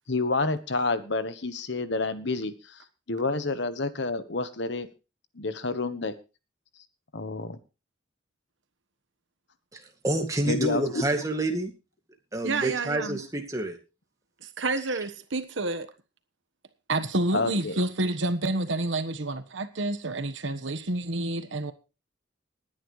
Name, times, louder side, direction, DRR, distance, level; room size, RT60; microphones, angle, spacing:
voice 1, 0.1-2.8 3.1-4.9 5.3-6.2 7.1-7.6 10.5-11.0 17.3-17.8, left 3 dB, 65° left, 1.2 m, -29 dB
voice 2, 9.7-11.7 12.3-13.8, right 2 dB, 15° right, 2.2 m, -28 dB
voice 3, 12.4-13.2 14.4-15.9 16.9-21.7, right 2 dB, 75° right, 1.3 m, -29 dB
19.5 x 10.0 x 3.2 m
head